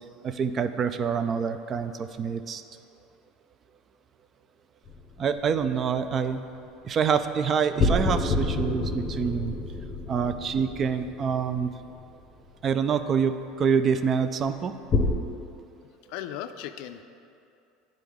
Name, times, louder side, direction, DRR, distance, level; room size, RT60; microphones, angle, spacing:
voice 1, 0.2-2.6 5.2-6.4 6.8-9.6 10.1-11.7 12.6-14.7, right 6 dB, 35° right, 10 dB, 0.3 m, -26 dB
sound 1, 4.9-5.8 7.8-12.2 14.9-15.1, left 2 dB, 35° left, 0.7 m, -28 dB
voice 2, 16.1-17.0, left 10 dB, 70° left, 9 dB, 0.3 m, -37 dB
9.8 x 3.8 x 3.5 m, 2.6 s
supercardioid pair, 115°, 0 cm